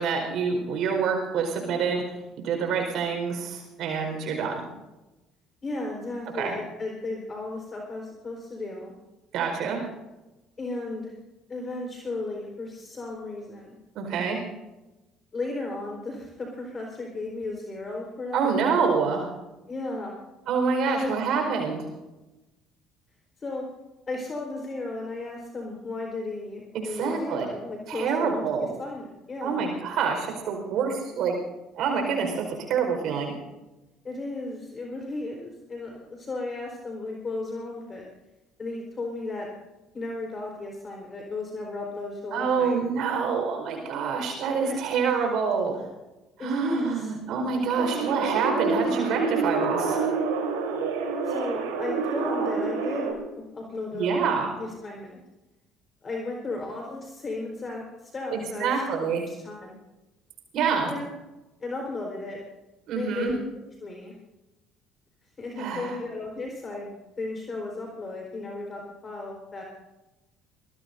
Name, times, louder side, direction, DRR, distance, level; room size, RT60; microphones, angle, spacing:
voice 1, 0.0-2.0 2.4-4.6 6.3-6.5 9.3-9.8 13.9-14.4 18.3-19.3 20.5-21.8 26.7-27.5 27.9-28.7 29.4-31.4 31.8-33.3 42.3-45.8 46.4-50.0 53.9-54.6 58.3-59.2 60.5-60.9 62.9-63.3 65.6-66.0, right 5 dB, 60° right, 3 dB, 4.8 m, -26 dB
voice 2, 5.6-8.9 10.6-11.1 11.5-13.8 15.3-18.5 19.7-20.1 20.9-21.2 23.4-23.7 24.1-29.6 34.0-38.1 38.6-39.5 39.9-42.7 44.6-45.2 46.4-47.1 51.2-54.2 54.6-55.2 56.0-58.7 59.3-59.8 60.8-61.0 61.6-62.4 62.9-63.4 63.8-64.1 65.4-69.6, left 2 dB, 35° left, 0 dB, 4.5 m, -35 dB
sound 1, 47.8-53.1, right 4 dB, 80° right, 3.9 m, -27 dB
25.0 x 20.0 x 2.7 m, 1.0 s
hypercardioid pair, 60°, 0 cm